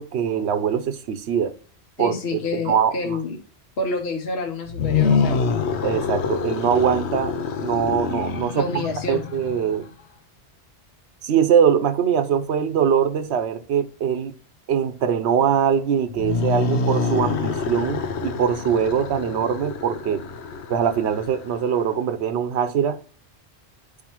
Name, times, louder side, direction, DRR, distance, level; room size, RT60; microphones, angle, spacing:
voice 1, 0.0-1.5 2.0-3.2 5.8-7.3 7.6-8.8 9.1-9.8 11.2-14.3 14.7-20.2 20.7-23.0, right 8 dB, 85° right, 1.0 m, -22 dB
voice 2, 2.0-3.4 3.8-5.6 8.5-9.2, left 3 dB, 70° left, 1.2 m, -28 dB
sound 1, 4.7-9.8 16.1-21.7, left 5 dB, 85° left, 1.0 m, -26 dB
11.0 x 4.9 x 2.9 m
omnidirectional pair, 1.1 m